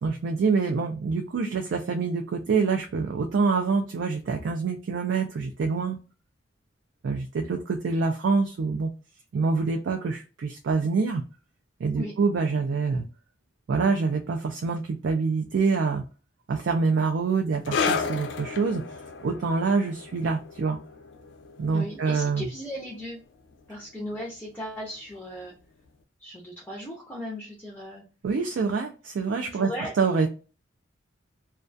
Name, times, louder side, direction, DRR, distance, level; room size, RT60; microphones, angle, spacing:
voice 1, 0.0-6.0 7.0-8.9 9.3-11.2 11.8-13.0 13.7-16.0 16.5-18.8 19.2-20.8 21.6-22.4 28.2-29.7 30.0-30.3, right 4 dB, 65° right, 4 dB, 0.3 m, -26 dB
sound 1, 17.7-24.7 24.9-25.1 25.9-26.0, left 5 dB, 65° left, 0.4 m, -34 dB
voice 2, 21.7-23.2 23.7-25.5 26.2-28.0 29.4-29.9, left 1 dB, 10° left, -2 dB, 0.5 m, -37 dB
2.2 x 2.2 x 2.5 m, 0.35 s
head